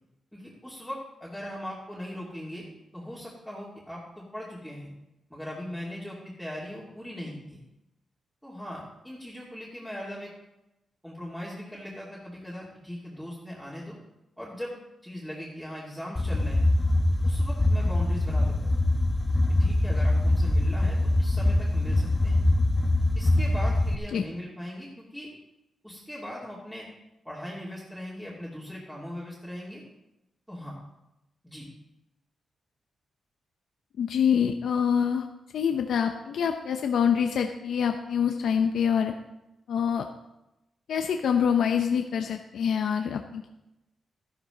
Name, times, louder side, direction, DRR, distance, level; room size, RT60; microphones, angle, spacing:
voice 1, 0.3-2.6 2.9-4.9 5.3-7.6 8.4-10.3 11.0-14.0 14.4-16.7 17.2-18.9 19.6-22.4 23.1-25.3 25.8-26.9 27.2-29.8 30.5-30.8 31.4-31.7, equal, ahead, -7 dB, 3.0 m, -39 dB
sound 1, 16.2-24.0, left 1 dB, 20° left, 1.1 m, -23 dB
voice 2, 34.0-35.3 35.5-39.1 39.7-40.0 40.9-43.5, left 7 dB, 80° left, 5 dB, 0.7 m, -25 dB
13.0 x 12.0 x 4.0 m, 0.93 s
cardioid pair, 90°, 0 cm